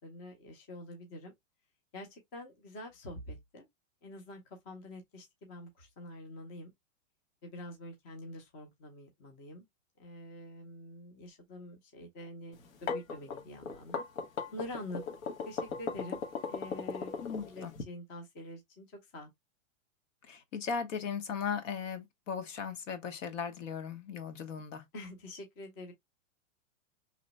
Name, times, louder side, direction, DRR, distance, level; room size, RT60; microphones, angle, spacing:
voice 1, 0.0-1.3 1.9-3.7 4.0-6.7 7.4-9.6 10.0-14.0 14.5-17.1 17.5-18.9 19.1-19.3 24.9-25.9, left 1 dB, 20° left, 0.5 m, -46 dB
sound 1, 12.6-17.8, left 5 dB, 90° left, 1.1 m, -37 dB
voice 2, 17.2-17.7 20.3-24.9, left 6 dB, 65° left, 1.1 m, -37 dB
3.0 x 2.1 x 3.9 m
supercardioid pair, 165°, 40 cm